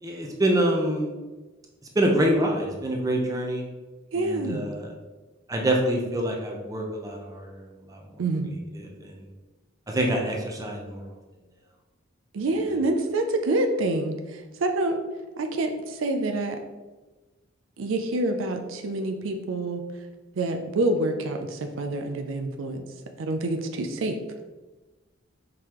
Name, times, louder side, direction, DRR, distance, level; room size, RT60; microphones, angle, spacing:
voice 1, 0.0-1.1 1.9-3.6 4.1-4.9 5.5-8.0 8.8-9.3 9.9-11.1, right 1 dB, 20° right, 0 dB, 0.6 m, -26 dB
voice 2, 4.1-4.7 8.2-8.5 12.3-15.0 15.4-16.6 17.8-19.8 20.4-22.8 23.2-24.2, right 2 dB, 80° right, 5 dB, 0.5 m, -27 dB
4.7 x 3.7 x 2.9 m, 1.2 s
head